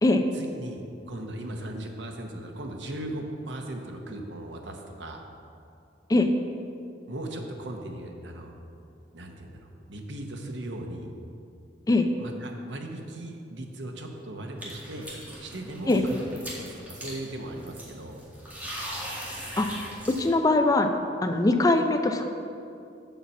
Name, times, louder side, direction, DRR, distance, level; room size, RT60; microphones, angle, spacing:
voice 1, 0.3-5.3 7.1-8.5 9.1-11.1 12.2-15.1 15.4-18.2, right 1 dB, 85° right, 2 dB, 1.0 m, -38 dB
sound 1, 14.6-20.3, equal, 10° right, 1.9 m, -40 dB
voice 2, 20.1-20.9 21.2-22.2, left 2 dB, 20° left, 6 dB, 0.4 m, -21 dB
7.3 x 5.6 x 7.1 m, 2.5 s
head